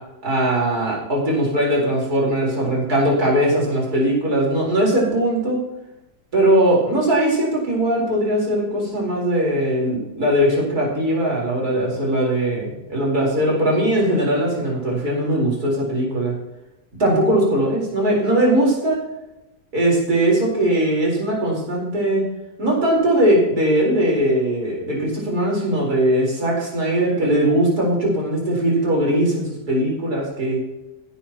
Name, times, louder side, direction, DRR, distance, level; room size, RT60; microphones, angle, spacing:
voice 1, 0.2-5.6 6.3-16.3 17.0-19.0 19.7-22.2 22.6-30.6, right 1 dB, 65° right, -3 dB, 4.9 m, -20 dB
16.5 x 10.5 x 3.0 m, 0.95 s
omnidirectional pair, 1.8 m